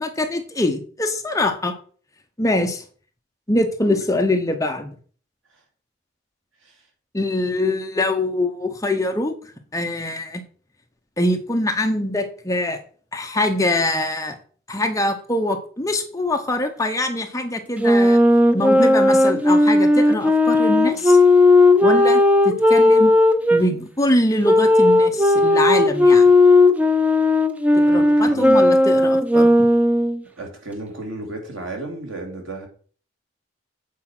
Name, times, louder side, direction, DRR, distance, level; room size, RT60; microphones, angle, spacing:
voice 1, 0.0-1.8 2.4-2.8 3.5-4.9 7.1-9.3 9.7-10.4 11.2-12.8 13.1-14.4 14.7-18.2 18.5-21.2 21.8-23.1 23.5-26.2 27.8-29.7, left 1 dB, 15° left, 5 dB, 0.9 m, -23 dB
Wind instrument woodwind instrument, 17.8-23.6 24.4-30.2, left 2 dB, 5° right, 0.5 m, -15 dB
voice 2, 27.8-28.7 30.4-32.7, right 2 dB, 80° right, 2 dB, 2.7 m, -34 dB
8.4 x 4.9 x 6.0 m, 0.43 s
head